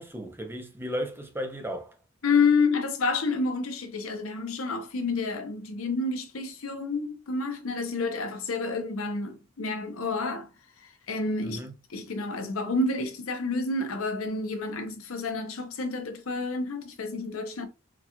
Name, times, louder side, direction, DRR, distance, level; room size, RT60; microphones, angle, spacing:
voice 1, 0.0-1.9 11.4-11.7, equal, 10° right, 0.5 m, -35 dB
voice 2, 2.2-10.5 10.8-17.7, left 3 dB, 85° left, 0.8 m, -29 dB
3.9 x 2.3 x 2.9 m
head